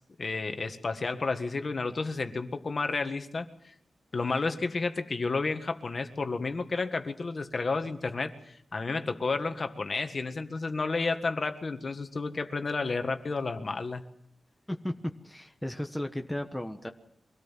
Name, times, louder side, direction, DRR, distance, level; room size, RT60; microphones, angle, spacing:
voice 1, 0.2-3.7 4.1-14.0, left 3 dB, 40° left, 7 dB, 1.6 m, -31 dB
voice 2, 15.2-16.9, left 1 dB, 5° left, 4 dB, 1.2 m, -35 dB
24.5 x 17.5 x 7.4 m, 0.71 s
wide cardioid pair, 145°, 0 cm